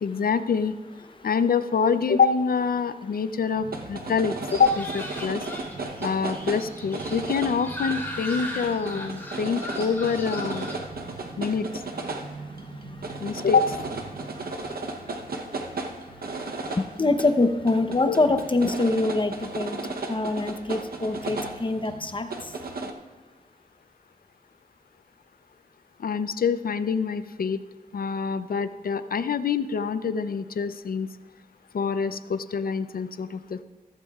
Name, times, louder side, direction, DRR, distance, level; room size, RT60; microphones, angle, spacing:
voice 1, 0.0-0.7 1.2-5.4 6.0-10.8 11.4-11.7 13.2-13.8 18.1-18.2 26.0-27.6 27.9-31.1 31.7-33.6, left 5 dB, 75° left, 13 dB, 0.5 m, -25 dB
sound 1, 3.6-22.9, right 3 dB, 90° right, 0.8 m, -35 dB
sound 2, 4.5-10.7, left 1 dB, 15° left, 3.1 m, -38 dB
voice 2, 16.8-19.8 20.1-22.3, left 2 dB, 35° left, 8 dB, 0.8 m, -24 dB
15.5 x 14.5 x 2.4 m, 1.3 s
wide cardioid pair, 85°, 15 cm